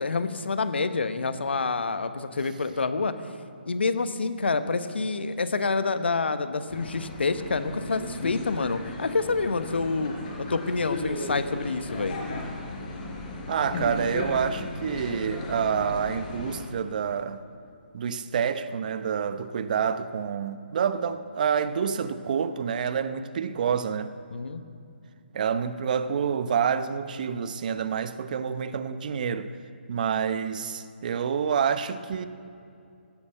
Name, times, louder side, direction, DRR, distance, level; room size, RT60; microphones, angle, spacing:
voice 1, 0.0-3.1 3.7-12.2 24.3-24.6, left 4 dB, 70° left, 1.1 m, -27 dB
sound 1, 6.7-16.6, left 2 dB, 40° left, 4.4 m, -36 dB
voice 2, 13.5-17.4 17.9-24.1 25.3-29.5 29.9-32.3, right 7 dB, 45° right, 0.8 m, -28 dB
16.0 x 9.8 x 7.9 m
figure-of-eight pair, 140°, 6 cm